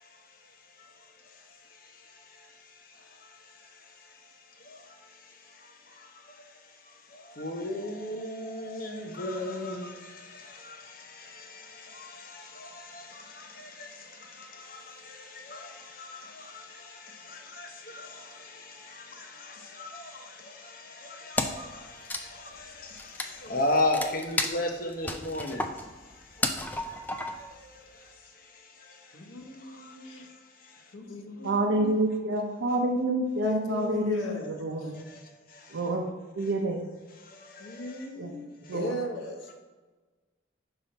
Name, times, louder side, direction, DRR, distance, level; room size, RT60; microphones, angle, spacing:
voice 1, 0.0-30.9 34.9-35.8 37.2-38.1 38.6-38.8, left 2 dB, 50° left, 2 dB, 0.8 m, -38 dB
Wood, 21.4-21.7 22.0-27.6, left 2 dB, 10° left, 0.3 m, -33 dB
voice 2, 29.1-30.3 30.9-31.9 33.4-34.5 34.8-34.9 37.6-39.5, left 1 dB, 85° left, 0 dB, 1.1 m, -38 dB
voice 3, 31.4-35.0 35.7-36.0 36.4-36.9 38.2-38.3 38.7-38.9, right 1 dB, 80° right, -1 dB, 0.7 m, -28 dB
5.8 x 3.5 x 5.3 m, 1.3 s
head